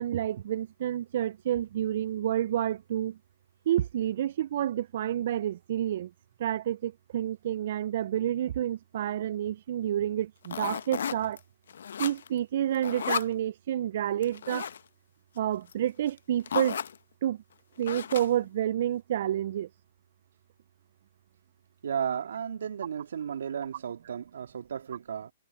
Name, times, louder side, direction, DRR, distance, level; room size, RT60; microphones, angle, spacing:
voice 1, 0.0-3.2 3.7-6.1 6.4-11.4 12.0-14.7 15.4-16.8 17.2-17.4 17.8-19.7, right 11 dB, 55° right, 0.4 m, -29 dB
sound 1, 10.4-11.4 11.7-12.4 12.7-13.3 14.2-14.8 15.7-15.8 16.1-16.2 16.5-17.0 17.8-18.5, left 8 dB, 70° left, 0.9 m, -33 dB
voice 2, 21.8-25.3, right 8 dB, 75° right, 2.2 m, -34 dB
hypercardioid pair, 135°, 0 cm